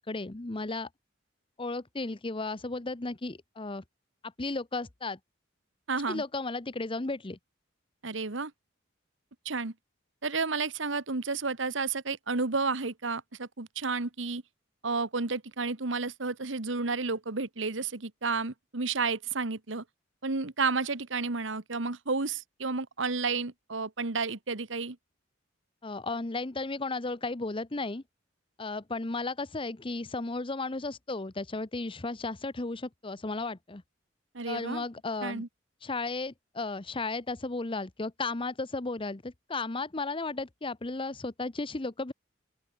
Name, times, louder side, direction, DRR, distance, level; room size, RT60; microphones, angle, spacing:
voice 1, 0.1-0.9 1.6-3.8 4.4-5.2 6.1-7.4 25.8-28.0 28.6-33.8 34.5-35.4 35.8-42.1, left 3 dB, 25° left, 0.9 m, -34 dB
voice 2, 5.9-6.2 8.0-8.5 9.4-9.7 10.2-14.4 14.8-19.8 20.2-25.0 34.3-34.8 35.2-35.5, right 4 dB, 70° right, 1.5 m, -31 dB
open air
head